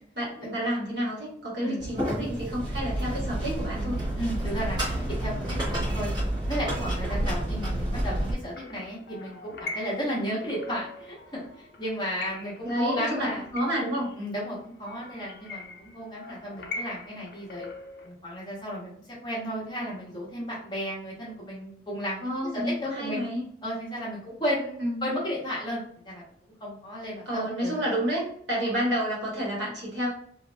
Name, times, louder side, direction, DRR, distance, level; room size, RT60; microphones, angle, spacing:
voice 1, 0.1-4.0 12.6-14.1 22.2-23.4 24.8-25.1 27.2-30.1, equal, 65° right, -5 dB, 1.3 m, -30 dB
sound 1, 1.8-8.3, right 1 dB, 25° right, 1.0 m, -29 dB
voice 2, 4.2-6.1 6.4-13.4 14.1-17.7 18.0-23.2 23.6-26.3 26.6-27.9, equal, 25° left, -5 dB, 0.9 m, -34 dB
sound 2, 8.3-18.1, left 2 dB, 55° left, 0.5 m, -42 dB
3.1 x 2.4 x 2.2 m, 0.64 s
head